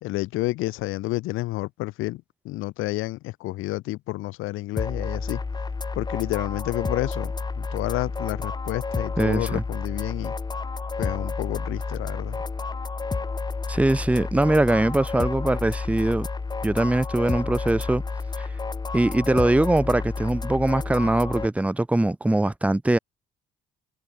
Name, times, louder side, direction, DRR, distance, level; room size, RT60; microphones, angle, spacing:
voice 1, 0.0-5.4 5.9-10.3 11.0-12.4, left 19 dB, 85° left, 3.1 m, -30 dB
sound 1, 4.8-21.5, left 4 dB, 20° left, 6.8 m, -30 dB
voice 2, 9.2-9.6 13.7-16.3 16.6-18.0 18.4-18.5 18.9-23.0, right 2 dB, 5° right, 1.4 m, -22 dB
cardioid pair, 130°, 20 cm